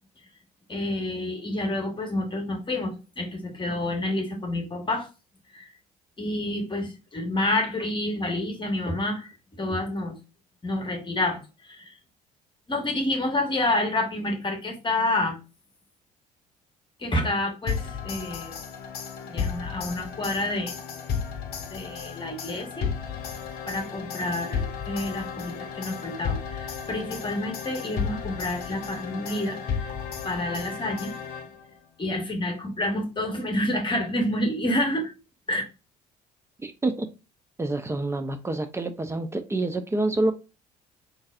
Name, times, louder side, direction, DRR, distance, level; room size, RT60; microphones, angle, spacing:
voice 1, 0.7-5.1 5.5-5.7 6.2-9.3 9.6-10.2 10.6-12.0 12.7-15.4 17.0-18.5 19.3-20.7 21.7-22.9 23.6-29.9 30.2-31.1 32.0-35.1 35.5-35.6, left 1 dB, 25° left, 1.2 m, -28 dB
sound 1, 17.7-31.8, left 6 dB, 50° left, 0.7 m, -34 dB
voice 2, 36.6-37.1 37.6-40.3, right 2 dB, 15° right, 0.5 m, -27 dB
3.9 x 2.6 x 2.4 m
figure-of-eight pair, 55°, 21 cm